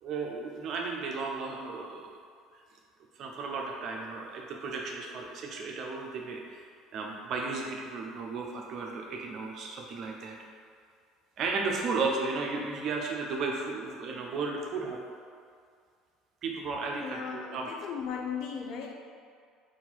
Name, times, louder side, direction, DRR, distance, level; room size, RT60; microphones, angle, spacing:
voice 1, 0.0-2.2 2.5-2.6 3.2-6.6 6.9-10.4 11.4-15.0 16.4-17.7, right 4 dB, 50° right, 0 dB, 0.6 m, -34 dB
voice 2, 17.0-18.9, left 6 dB, 65° left, 2 dB, 0.5 m, -37 dB
3.8 x 2.5 x 4.5 m, 2.2 s
supercardioid pair, 110°, 0 cm